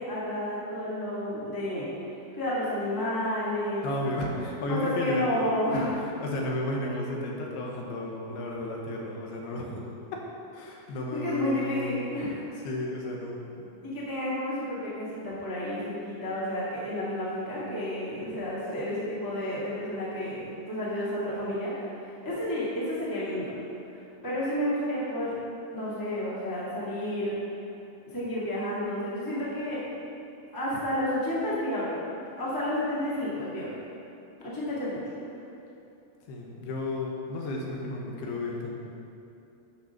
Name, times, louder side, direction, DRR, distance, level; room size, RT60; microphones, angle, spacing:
voice 1, 0.0-1.9 2.4-3.9 4.7-5.9 11.1-12.4 13.8-23.5 23.9-25.3 25.7-27.4 28.1-29.8 30.5-32.0 32.4-33.7 34.4-35.0, left 1 dB, 20° left, -9 dB, 0.5 m, -31 dB
voice 2, 3.8-5.3 5.7-9.9 10.5-12.1 12.6-13.7 36.3-38.8, left 2 dB, 75° left, -1 dB, 2.8 m, -33 dB
8.8 x 5.9 x 5.9 m, 2.7 s
omnidirectional pair, 5.0 m